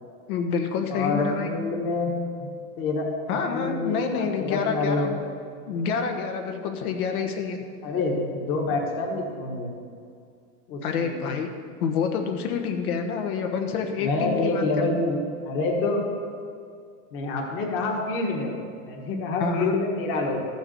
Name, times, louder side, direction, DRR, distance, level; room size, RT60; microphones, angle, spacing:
voice 1, 0.3-1.5 3.3-5.1 5.7-7.6 10.8-11.5 11.8-14.6 19.4-19.7, left 6 dB, 75° left, 4 dB, 1.4 m, -27 dB
voice 2, 0.9-2.5 2.8-5.2 7.8-9.7 10.7-11.4 14.0-15.2 15.4-16.0 17.1-18.5 18.8-20.4, left 3 dB, 30° left, 1 dB, 1.4 m, -27 dB
13.5 x 7.1 x 6.9 m, 2.3 s
supercardioid pair, 175°, 45 cm